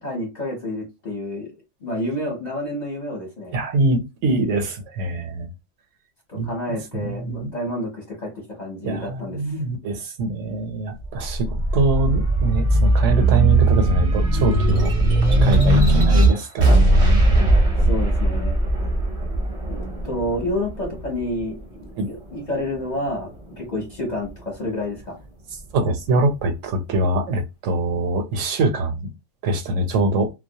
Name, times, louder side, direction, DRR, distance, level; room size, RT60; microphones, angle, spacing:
voice 1, 0.0-1.5 1.8-3.5 6.3-9.6 15.9-16.1 17.9-18.6 19.7-25.2, left 1 dB, 40° left, 0.8 m, -29 dB
voice 2, 3.5-5.5 6.4-7.5 8.8-14.9 15.4-17.6 22.0-22.1 25.7-29.1 29.4-30.3, right 2 dB, 80° right, 1.0 m, -24 dB
sound 1, 11.0-21.8 22.3-23.5, right 2 dB, 40° right, 0.6 m, -18 dB
2.2 x 2.0 x 2.7 m
omnidirectional pair, 1.3 m